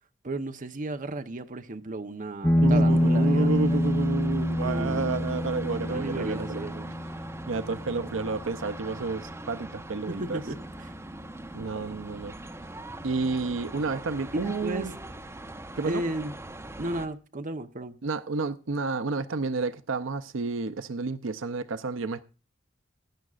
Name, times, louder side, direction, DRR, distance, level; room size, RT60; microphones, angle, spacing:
voice 1, 0.2-3.8 4.6-5.1 5.9-6.9 10.1-10.9 14.4-14.9 15.8-16.3 16.8-18.0, right 2 dB, 45° right, 0.9 m, -34 dB
sound 1, 2.4-11.5, left 1 dB, 15° left, 1.0 m, -27 dB
voice 2, 2.6-6.6 7.5-10.4 11.5-12.3 13.0-14.9 15.8-16.0 18.0-22.2, right 4 dB, 80° right, 0.6 m, -30 dB
sound 2, 2.9-17.1, right 1 dB, 15° right, 1.0 m, -42 dB
17.0 x 11.0 x 2.5 m
head